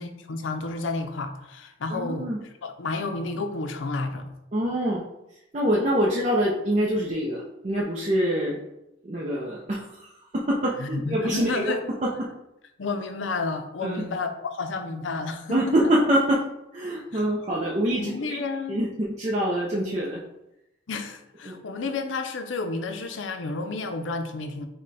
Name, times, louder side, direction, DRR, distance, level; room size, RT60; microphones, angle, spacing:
voice 1, 0.0-2.3 2.6-4.2 10.8-11.8 12.8-15.7 17.1-17.2 18.0-18.8 20.9-24.7, left 3 dB, 75° left, 7 dB, 0.5 m, -31 dB
voice 2, 1.9-2.4 4.5-5.0 5.5-8.6 9.0-11.8 12.0-12.3 13.8-14.1 15.5-16.4 16.7-18.4 18.7-20.2 21.5-21.6, right 1 dB, 35° right, -4 dB, 0.5 m, -25 dB
5.2 x 2.2 x 4.1 m, 0.88 s
head